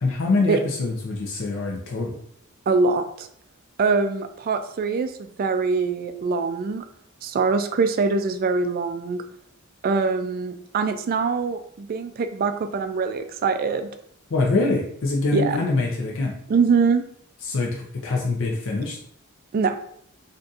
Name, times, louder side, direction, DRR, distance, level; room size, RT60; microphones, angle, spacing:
voice 1, 0.0-2.2 14.3-16.3 17.4-19.0, left 3 dB, 65° left, -1 dB, 0.5 m, -24 dB
voice 2, 2.7-3.3 3.8-6.8 7.2-9.2 9.8-13.9 15.3-15.6 16.5-17.0 19.5-19.8, right 4 dB, 45° right, 9 dB, 0.3 m, -23 dB
3.9 x 2.6 x 2.4 m, 0.65 s
head